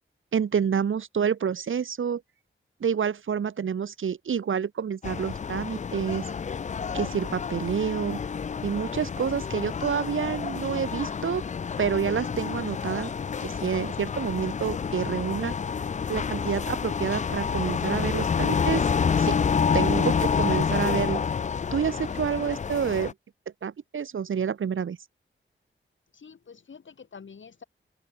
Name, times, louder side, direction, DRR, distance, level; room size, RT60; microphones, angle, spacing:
voice 1, 0.3-2.2 2.8-6.2 6.9-8.2 8.6-11.4 11.8-13.1 13.4-15.5 16.1-18.8 19.2-19.4 19.7-21.2 21.7-23.1 23.6-25.0, right 7 dB, 75° right, 1.1 m, -28 dB
sound 1, 5.0-23.1, left 6 dB, 35° left, 0.4 m, -28 dB
voice 2, 26.1-27.6, left 6 dB, 65° left, 3.1 m, -47 dB
wide cardioid pair, 110°, 21 cm